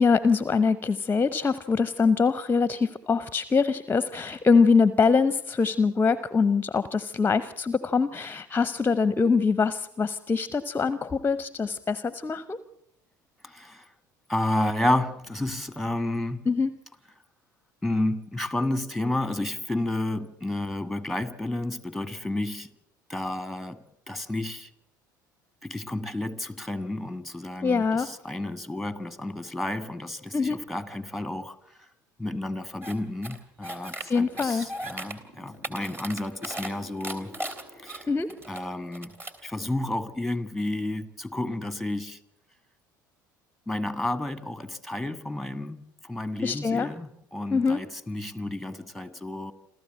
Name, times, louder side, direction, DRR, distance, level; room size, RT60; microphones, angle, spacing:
voice 1, 0.0-12.6 16.5-16.7 27.6-28.1 30.3-30.6 34.1-34.7 38.1-38.3 46.4-46.9 47.5-47.8, left 5 dB, 20° left, 0.8 m, -23 dB
voice 2, 13.4-13.9 14.3-16.5 17.1-17.2 17.8-22.7 23.1-24.7 25.6-31.9 32.2-37.3 37.7-38.1 38.5-39.2 39.4-42.2 43.7-49.5, left 1 dB, ahead, 1.6 m, -31 dB
sound 1, 32.8-32.9 33.2-34.0 34.4-35.1 35.5-36.7 37.0-38.6 38.9-39.4, right 1 dB, 20° right, 3.2 m, -36 dB
sound 2, 34.0-40.3, equal, 60° right, 7.6 m, -51 dB
27.5 x 14.0 x 7.5 m
figure-of-eight pair, 65°, 10 cm